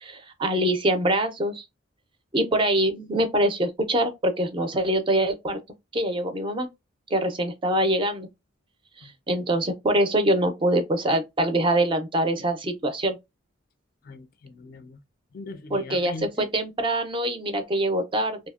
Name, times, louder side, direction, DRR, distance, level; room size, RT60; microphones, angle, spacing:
voice 1, 0.0-1.6 2.3-5.6 5.9-6.7 7.1-8.3 9.0-13.2 15.7-18.4, right 1 dB, 25° right, 0.4 m, -24 dB
voice 2, 14.0-15.0 15.3-16.5, left 3 dB, 45° left, 0.3 m, -40 dB
2.7 x 2.0 x 2.3 m
head